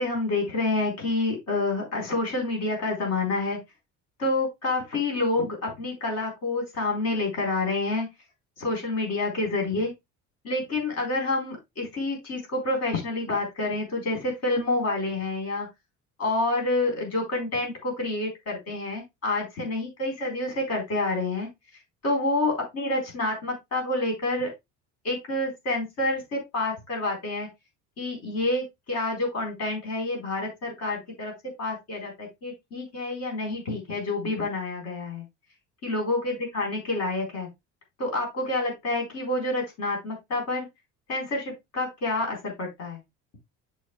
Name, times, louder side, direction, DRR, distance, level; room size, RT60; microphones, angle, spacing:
voice 1, 0.0-3.6 4.2-8.1 8.6-9.9 10.4-15.7 16.2-21.5 22.0-24.5 25.0-27.5 28.0-31.3 31.6-35.2 35.8-37.5 38.0-40.7 41.1-43.0, left 2 dB, 50° left, 1 dB, 4.1 m, -28 dB
8.4 x 6.8 x 2.3 m, 0.20 s
cardioid pair, 145°, 32 cm